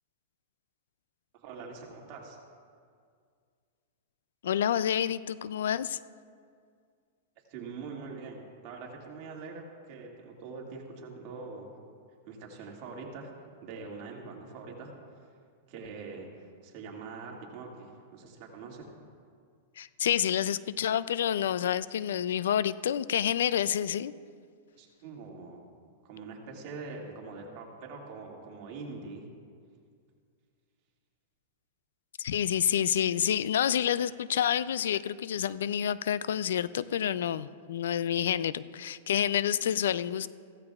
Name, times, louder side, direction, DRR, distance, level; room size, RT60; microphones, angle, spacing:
voice 1, 1.4-2.4 7.5-11.8 12.3-13.3 13.6-14.9 15.7-16.3 16.6-18.9 24.8-25.6 26.0-29.3, right 4 dB, 50° right, -1 dB, 2.2 m, -43 dB
voice 2, 4.4-6.0 19.8-24.1 32.2-40.3, left 9 dB, 80° left, 17 dB, 0.4 m, -28 dB
15.5 x 13.5 x 2.4 m, 2.1 s
hypercardioid pair, 135°, 0 cm